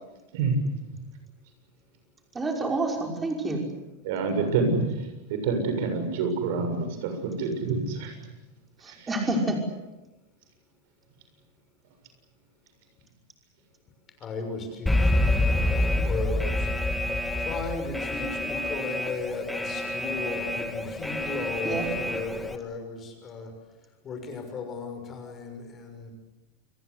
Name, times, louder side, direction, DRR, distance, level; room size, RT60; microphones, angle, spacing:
voice 1, 2.3-3.6 8.8-9.6 21.6-21.9, right 2 dB, 15° right, 2 dB, 5.5 m, -28 dB
voice 2, 4.0-5.0 5.3-8.1 8.9-9.1, right 4 dB, 65° right, 7 dB, 7.0 m, -27 dB
voice 3, 14.2-16.7 17.4-23.5 24.0-26.1, left 3 dB, 25° left, 6 dB, 6.4 m, -36 dB
Alarm, 14.9-22.6, left 1 dB, 5° left, 1.9 m, -27 dB
29.0 x 21.5 x 8.3 m, 1.0 s
supercardioid pair, 145°, 0 cm